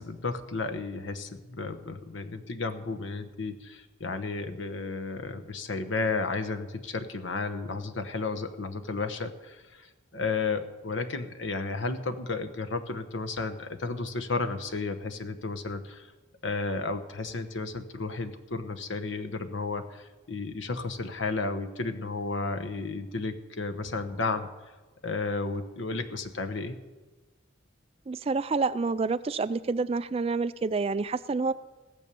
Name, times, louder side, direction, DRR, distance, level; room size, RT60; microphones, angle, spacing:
voice 1, 0.0-16.1 16.4-24.5 25.0-26.8, left 3 dB, 70° left, 7 dB, 1.0 m, -33 dB
voice 2, 28.1-31.5, right 4 dB, 30° right, 14 dB, 0.3 m, -28 dB
17.0 x 7.2 x 6.9 m, 1.2 s
head